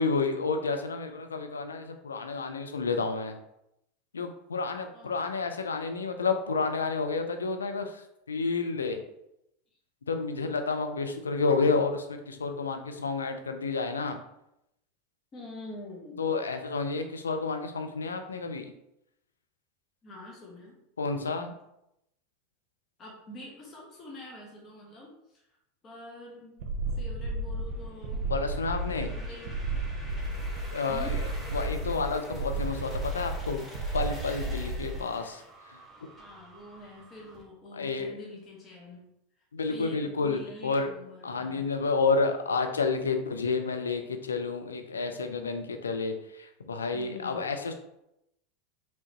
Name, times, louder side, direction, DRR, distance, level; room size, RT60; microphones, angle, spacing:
voice 1, 0.0-3.4 4.1-8.0 8.3-9.0 10.1-14.2 16.2-18.7 21.0-21.5 28.3-29.1 30.7-31.2 31.5-33.6 33.9-35.4 35.7-35.8 37.7-38.2 39.5-40.9 41.2-47.7, left 4 dB, 85° left, 6 dB, 0.5 m, -30 dB
voice 2, 4.9-5.4 15.3-16.2 20.0-20.8 23.0-25.4 25.8-28.3 29.1-29.6 30.9-31.2 36.2-39.0 39.7-41.7 46.9-47.6, left 1 dB, 35° left, -3 dB, 1.4 m, -46 dB
sound 1, 26.6-35.0, right 2 dB, 55° right, 0.7 m, -33 dB
sound 2, 27.7-37.4, equal, 5° left, 1.7 m, -48 dB
5.1 x 3.4 x 3.0 m, 0.83 s
hypercardioid pair, 85°, 0 cm